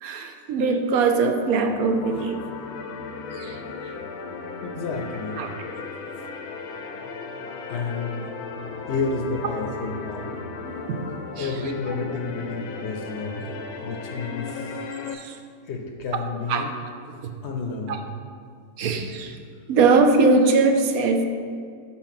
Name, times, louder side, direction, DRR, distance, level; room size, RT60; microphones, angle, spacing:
voice 1, 0.0-2.4 3.3-3.6 5.4-5.5 10.7-10.8 11.4-11.5 15.1-15.4 16.1-16.2 16.5-16.6 17.2-17.3 17.9-18.0 18.8-19.4 19.7-21.3, right 4 dB, 80° right, 5 dB, 1.1 m, -21 dB
sound 1, 1.4-15.1, left 4 dB, 85° left, 1.1 m, -36 dB
voice 2, 4.6-5.4 7.7-8.3 8.9-10.3 11.4-13.5 13.8-14.8 15.6-16.7 17.4-18.1, left 4 dB, 60° left, 2 dB, 0.8 m, -30 dB
6.2 x 4.2 x 5.7 m, 2.2 s
omnidirectional pair, 1.5 m